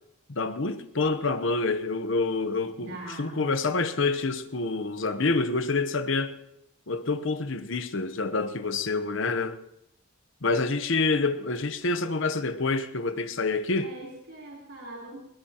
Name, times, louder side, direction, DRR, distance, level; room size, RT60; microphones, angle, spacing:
voice 1, 0.3-2.9 3.2-6.4 6.9-9.6 10.4-13.9, left 3 dB, 60° left, 0.9 m, -27 dB
voice 2, 2.8-3.5 13.8-15.2, right 2 dB, 65° right, 4.0 m, -41 dB
20.5 x 17.5 x 3.0 m
head